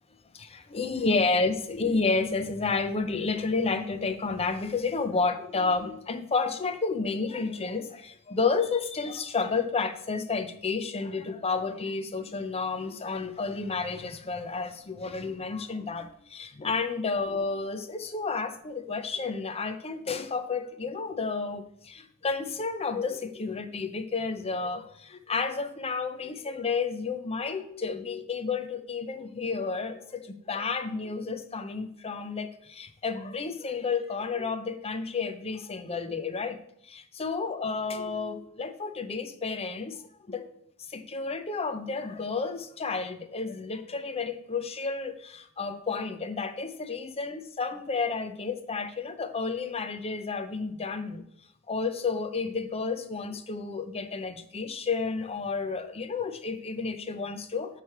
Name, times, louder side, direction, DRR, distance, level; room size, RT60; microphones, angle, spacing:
voice 1, 0.3-36.6 36.8-40.0 40.3-40.5 40.9-51.3 51.7-57.8, left 4 dB, 25° left, 10 dB, 0.6 m, -31 dB
8.9 x 3.3 x 5.8 m, 0.69 s
head